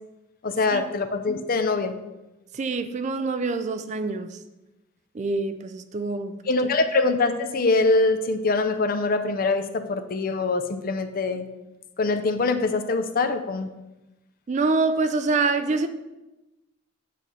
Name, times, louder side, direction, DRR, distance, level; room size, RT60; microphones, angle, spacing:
voice 1, 0.4-2.0 6.5-11.5 12.0-13.7, left 3 dB, 45° left, 8 dB, 0.5 m, -23 dB
voice 2, 2.5-4.4 5.1-6.4 14.5-15.9, right 3 dB, 35° right, 9 dB, 0.4 m, -25 dB
7.6 x 3.2 x 5.3 m, 1.0 s
head